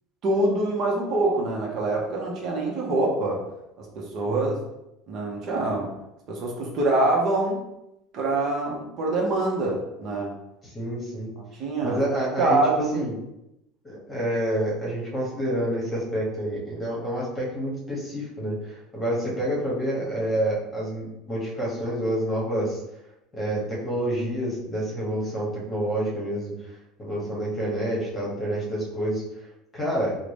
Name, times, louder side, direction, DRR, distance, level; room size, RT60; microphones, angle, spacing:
voice 1, 0.2-3.4 3.8-4.6 5.1-5.9 6.3-7.6 8.1-10.3 11.6-13.0, right 2 dB, 45° right, -2 dB, 0.7 m, -25 dB
voice 2, 10.6-11.3 11.8-12.6 12.9-13.1 13.8-22.8 23.3-26.5 27.0-29.2 29.7-30.1, right 1 dB, 15° left, -5 dB, 1.1 m, -28 dB
3.7 x 2.1 x 3.3 m, 0.87 s
cardioid pair, 145°, 0 cm